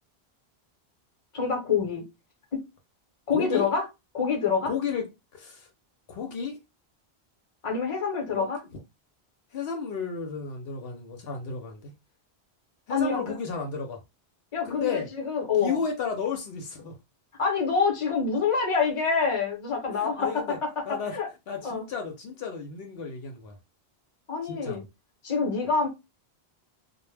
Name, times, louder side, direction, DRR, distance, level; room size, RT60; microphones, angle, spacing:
voice 1, 1.3-2.0 2.5-2.6 3.3-3.8 4.1-4.7 7.6-8.6 12.9-13.3 14.5-15.8 17.4-20.8 21.1-21.3 21.6-21.8 24.3-24.8 25.2-25.9, left 5 dB, 35° left, 0.8 m, -26 dB
voice 2, 3.3-3.7 4.7-5.7 6.1-6.6 8.3-8.5 9.5-11.9 12.9-14.0 14.6-15.1 15.6-17.0 19.9-20.6 20.9-21.1 21.5-23.5 24.4-24.8, left 6 dB, 70° left, 0.8 m, -33 dB
2.1 x 2.1 x 3.2 m
omnidirectional pair, 1.0 m